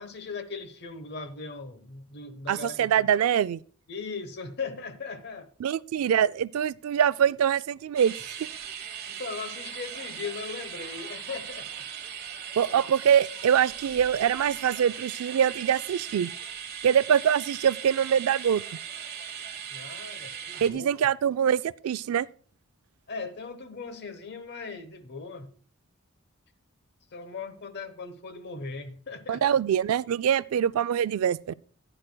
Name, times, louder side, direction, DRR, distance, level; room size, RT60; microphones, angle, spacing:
voice 1, 0.0-3.1 3.9-5.5 9.1-11.9 12.7-13.1 19.7-20.9 23.1-25.5 27.1-29.5, left 4 dB, 50° left, 1.0 m, -39 dB
voice 2, 2.5-3.6 5.6-8.2 12.6-16.3 16.8-18.6 20.6-22.3 29.3-31.5, right 8 dB, 85° right, 0.3 m, -24 dB
sound 1, 8.0-20.7, right 8 dB, 50° right, 1.1 m, -39 dB
15.0 x 10.0 x 2.2 m
head